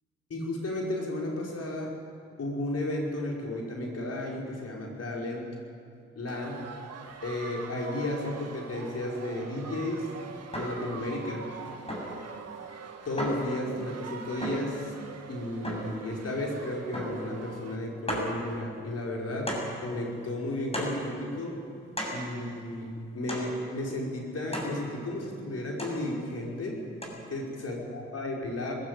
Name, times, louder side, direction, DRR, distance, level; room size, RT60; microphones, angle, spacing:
voice 1, 0.3-2.0 2.4-5.6 6.1-6.6 7.2-10.1 10.5-11.5 13.0-14.9 15.3-19.5 19.8-21.6 22.1-26.8 27.3-28.7, left 1 dB, 55° left, -1 dB, 5.3 m, -33 dB
sound 1, 6.3-17.8, right 5 dB, 55° right, 2.1 m, -44 dB
sound 2, 10.5-10.9 11.9-12.2 13.2-13.5 14.4-14.8 15.6-16.0 16.9-17.3 17.6-17.7 18.1-18.4 19.5-19.8 20.7-21.1 22.0-22.3 23.3-23.6 24.5-24.8 25.8-26.1 27.0-27.1, equal, 20° left, 7.3 m, -34 dB
20.0 x 15.5 x 9.0 m, 2.4 s
hypercardioid pair, 40°, 30 cm